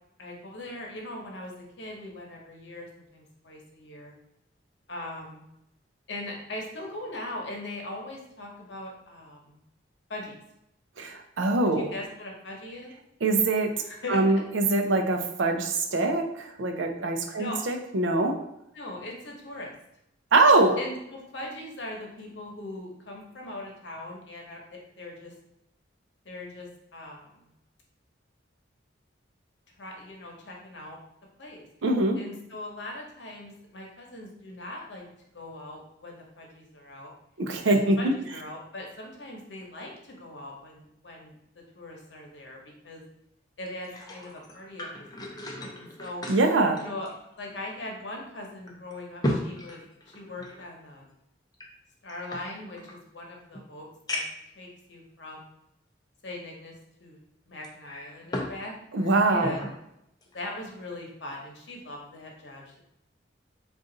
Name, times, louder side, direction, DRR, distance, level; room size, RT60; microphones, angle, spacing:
voice 1, 0.2-4.1 4.9-5.5 6.1-9.6 10.1-10.3 11.6-12.9 13.8-14.2 17.4-17.6 18.7-19.7 20.8-25.3 26.2-27.3 29.8-31.0 31.4-31.6 32.2-35.0 35.3-37.1 37.7-41.3 41.8-42.6 42.8-43.0 43.6-46.2 46.8-47.1 47.4-49.8 50.1-51.1 52.0-54.2 54.5-55.4 56.2-56.7 57.0-57.2 57.5-58.7 59.3-59.7 60.3-62.8, left 1 dB, 70° left, 0 dB, 0.9 m, -40 dB
voice 2, 11.0-11.9 13.2-13.7 14.1-18.4 20.3-20.8 31.8-32.2 37.4-38.1 46.3-46.8 58.9-59.6, right 2 dB, 85° right, 5 dB, 0.6 m, -23 dB
sound 1, 43.7-47.7 48.0-48.1 48.7-50.7 51.5-53.0 53.5-53.6 54.1-54.5 55.3-55.4 57.6-58.6 58.9-59.8 60.2-60.4, left 1 dB, 20° left, 0.5 m, -36 dB
3.8 x 2.5 x 3.9 m, 0.81 s
head